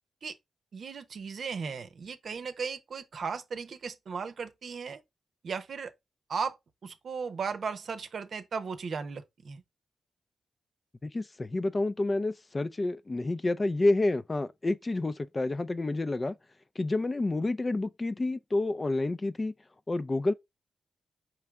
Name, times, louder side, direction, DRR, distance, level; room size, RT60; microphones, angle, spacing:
voice 1, 0.7-5.0 5.4-5.9 6.3-6.6 6.8-9.6, right 5 dB, 70° right, 0.7 m, -36 dB
voice 2, 11.0-16.3 16.8-19.5 19.9-20.3, left 2 dB, 35° left, 0.4 m, -29 dB
4.5 x 3.3 x 3.5 m
supercardioid pair, 45°, 0 cm